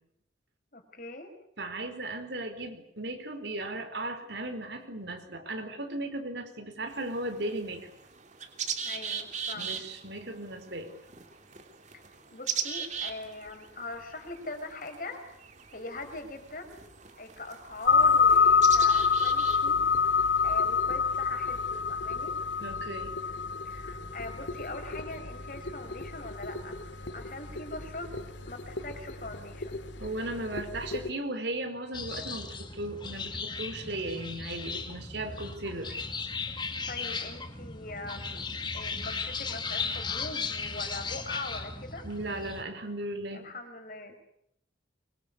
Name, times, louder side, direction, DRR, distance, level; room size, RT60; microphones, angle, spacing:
voice 1, 0.7-1.3 8.8-9.8 11.9-12.0 12.3-15.2 15.7-16.8 17.2-19.8 20.4-22.3 23.7-28.1 28.5-29.8 36.5-38.5 38.7-42.1 43.3-44.2, left 2 dB, 45° left, 6 dB, 5.2 m, -42 dB
voice 2, 1.6-7.9 9.5-10.9 22.6-23.2 30.0-36.0 42.0-43.5, right 1 dB, 65° right, 7 dB, 4.5 m, -36 dB
sound 1, 6.9-20.8, right 7 dB, 40° right, 3.1 m, -40 dB
sound 2, 17.9-31.1, left 5 dB, 80° left, 2.4 m, -27 dB
sound 3, 31.9-42.6, left 4 dB, 25° left, 2.1 m, -36 dB
24.5 x 24.5 x 8.4 m, 0.75 s
head